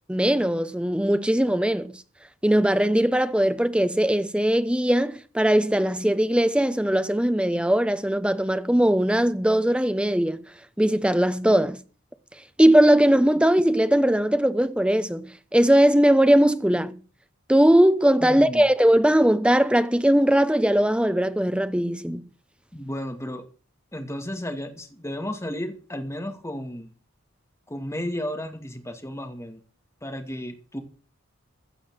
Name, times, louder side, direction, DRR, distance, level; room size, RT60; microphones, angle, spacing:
voice 1, 0.1-2.0 2.4-10.4 10.8-11.8 12.6-17.0 17.5-22.2, right 1 dB, 5° right, 0.9 m, -20 dB
voice 2, 18.2-18.7 22.7-23.5 23.9-26.9 27.7-29.6 30.0-30.8, equal, 15° left, 2.4 m, -33 dB
16.0 x 6.4 x 7.7 m
head